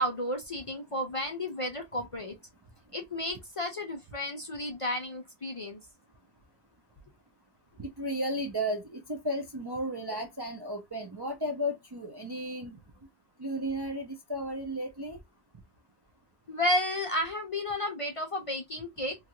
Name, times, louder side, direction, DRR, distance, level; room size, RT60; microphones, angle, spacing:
voice 1, 0.0-2.3 2.9-5.8 16.5-19.2, left 1 dB, 35° left, 0.6 m, -32 dB
voice 2, 7.8-12.8 13.4-15.2, equal, 30° right, 0.5 m, -34 dB
3.1 x 2.4 x 2.9 m
omnidirectional pair, 1.1 m